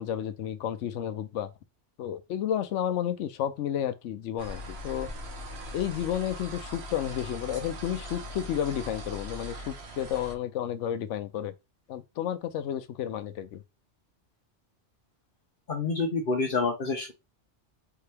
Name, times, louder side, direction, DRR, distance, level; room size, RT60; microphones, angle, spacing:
voice 1, 0.0-1.5 2.0-5.1 5.7-11.5 11.9-13.6, left 10 dB, 85° left, 0.9 m, -31 dB
sound 1, 4.4-10.3, equal, 65° right, 1.2 m, -40 dB
voice 2, 15.7-17.1, left 4 dB, 55° left, 0.9 m, -28 dB
4.5 x 2.7 x 3.3 m
omnidirectional pair, 1.2 m